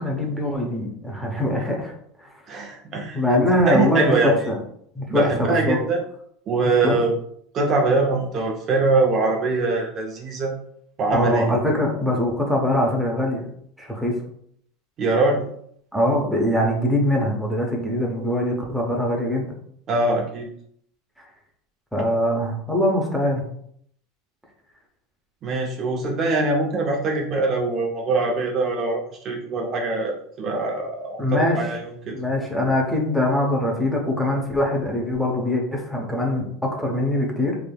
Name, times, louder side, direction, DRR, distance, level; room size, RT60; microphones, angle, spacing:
voice 1, 0.0-1.9 2.2-2.3 3.1-4.6 5.0-5.8 6.8-7.0 11.1-13.4 13.8-14.1 15.9-19.5 21.9-23.4 31.2-31.7 32.1-37.6, left 1 dB, ahead, -1 dB, 0.7 m, -22 dB
voice 2, 2.5-3.2 3.7-4.3 5.1-6.0 6.5-7.1 7.5-10.5 11.0-11.5 15.0-15.4 19.9-20.5 25.4-31.8 32.1-32.2, right 3 dB, 40° right, 1 dB, 0.5 m, -23 dB
3.4 x 2.6 x 2.2 m, 0.67 s
supercardioid pair, 120°, 0 cm